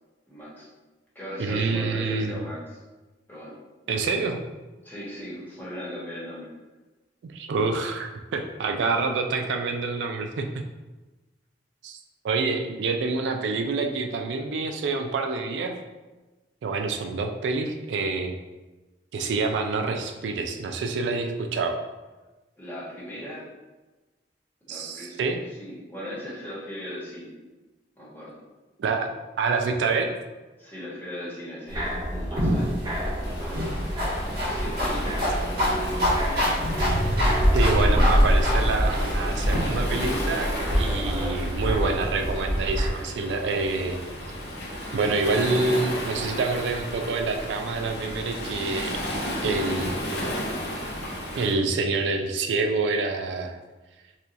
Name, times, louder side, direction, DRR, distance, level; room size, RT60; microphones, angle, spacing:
voice 1, 0.3-0.7 1.1-2.8 3.3-3.5 4.8-6.5 22.6-23.5 24.7-25.3 25.6-27.3 28.0-28.4 30.6-33.7 34.5-35.9, equal, 10° left, -8 dB, 1.0 m, -38 dB
voice 2, 1.4-2.4 3.9-4.4 7.2-10.7 11.8-12.0 12.2-15.8 16.6-18.3 19.1-21.8 24.7-25.4 28.8-29.1 29.4-30.1 37.5-44.0 44.9-49.1 49.4-50.3 51.4-53.6, right 4 dB, 85° right, 5 dB, 0.3 m, -27 dB
sound 1, 31.7-42.9, equal, 25° right, 0.7 m, -26 dB
sound 2, 32.4-39.6, equal, 60° right, 1.3 m, -28 dB
Waves surf, 33.2-51.5, left 1 dB, 65° left, 0.7 m, -34 dB
4.2 x 2.3 x 2.5 m, 1.2 s
head